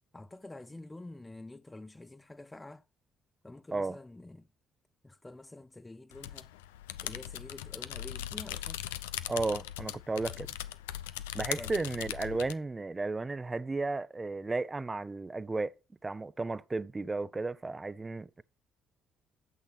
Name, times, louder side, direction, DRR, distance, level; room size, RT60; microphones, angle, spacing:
voice 1, 0.1-2.8 3.4-4.5 5.0-6.5 7.0-8.8 11.6-11.7, left 2 dB, 15° left, 0.9 m, -48 dB
sound 1, 6.1-12.5, left 13 dB, 85° left, 0.7 m, -40 dB
voice 2, 9.3-10.5 11.3-15.8 16.0-18.4, right 3 dB, 25° right, 0.8 m, -34 dB
12.0 x 8.3 x 6.0 m
hypercardioid pair, 50°, 0 cm